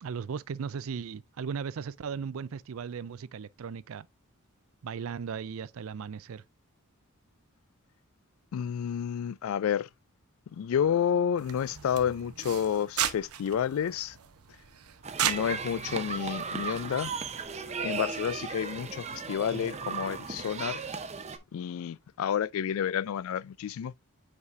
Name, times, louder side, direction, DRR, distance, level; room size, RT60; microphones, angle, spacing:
voice 1, 0.0-4.1 4.8-6.4, right 6 dB, 65° right, 0.4 m, -37 dB
voice 2, 8.5-9.9 10.5-14.2 15.2-17.1 17.8-20.8 21.5-23.9, left 8 dB, 70° left, 0.3 m, -30 dB
sound 1, 11.4-17.5, right 9 dB, 85° right, 0.8 m, -36 dB
sound 2, 15.0-21.4, right 5 dB, 30° right, 0.6 m, -36 dB
8.1 x 4.9 x 2.5 m
head